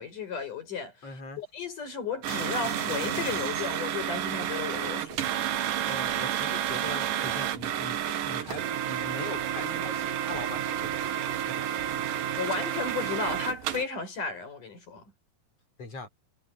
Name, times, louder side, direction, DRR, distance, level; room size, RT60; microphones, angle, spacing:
voice 1, 0.0-5.1 12.4-15.0, left 5 dB, 65° left, 8.1 m, -34 dB
voice 2, 1.0-1.4 5.8-11.2 11.4-12.2 15.8-16.1, left 2 dB, 45° left, 6.0 m, -41 dB
sound 1, 2.2-13.8, right 11 dB, 75° right, 3.0 m, -30 dB
sound 2, 2.3-3.9 4.6-6.0 6.9-7.0, right 3 dB, 55° right, 5.5 m, -39 dB
omnidirectional pair, 4.0 m